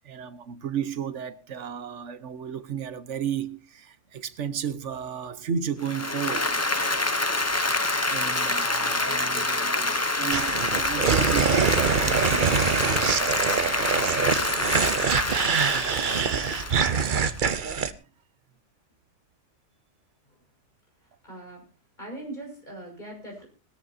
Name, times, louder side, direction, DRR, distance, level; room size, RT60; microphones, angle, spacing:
voice 1, 0.0-6.6 8.1-13.0, right 7 dB, 85° right, 1.3 m, -33 dB
Applause, 5.8-17.5, left 2 dB, 15° left, 0.7 m, -27 dB
sound 1, 10.3-17.9, right 6 dB, 45° right, 0.9 m, -24 dB
voice 2, 21.0-21.6 22.0-23.5, right 1 dB, 40° left, 6.4 m, -41 dB
20.0 x 14.0 x 2.7 m
omnidirectional pair, 1.2 m